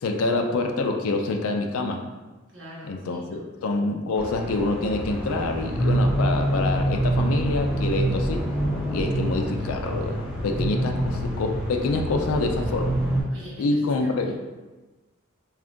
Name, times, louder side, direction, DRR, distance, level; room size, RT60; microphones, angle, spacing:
voice 1, 0.0-2.0 2.9-8.5 8.9-13.0 13.6-14.4, left 3 dB, 85° left, 4 dB, 0.4 m, -26 dB
voice 2, 2.5-3.5 13.3-14.4, equal, 60° right, -6 dB, 0.9 m, -42 dB
sound 1, 4.2-13.2, right 1 dB, 5° right, 0.5 m, -26 dB
2.5 x 2.4 x 3.6 m, 1.2 s
head